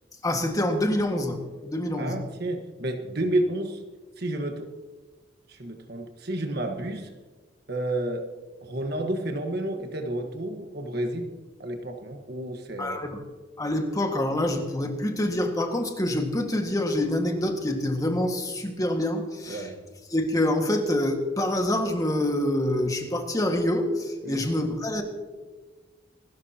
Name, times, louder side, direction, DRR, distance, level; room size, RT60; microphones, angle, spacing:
voice 1, 0.2-2.2 12.8-13.2 13.6-19.7 20.1-25.0, left 1 dB, 20° left, 4 dB, 1.7 m, -26 dB
voice 2, 2.0-3.8 4.2-4.7 5.5-7.1 7.7-8.3 8.6-11.3 11.6-13.0 19.5-19.7 24.2-24.4, right 1 dB, 60° right, 4 dB, 1.4 m, -30 dB
27.0 x 13.0 x 2.9 m, 1.3 s
head